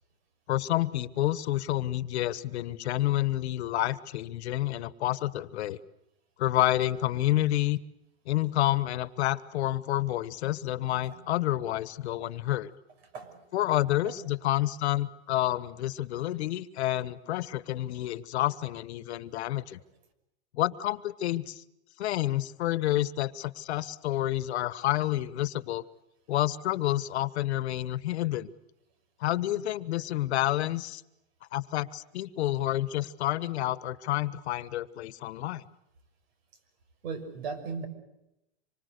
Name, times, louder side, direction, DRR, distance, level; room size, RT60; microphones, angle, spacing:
voice 1, 0.5-5.8 6.4-7.8 8.2-12.7 13.5-19.8 20.5-21.6 22.0-25.8 26.3-28.5 29.2-31.0 31.5-35.6, left 14 dB, 70° left, 16 dB, 1.4 m, -29 dB
voice 2, 37.0-37.9, right 5 dB, 65° right, 11 dB, 6.2 m, -37 dB
26.5 x 24.5 x 6.7 m, 0.87 s
supercardioid pair, 165°, 34 cm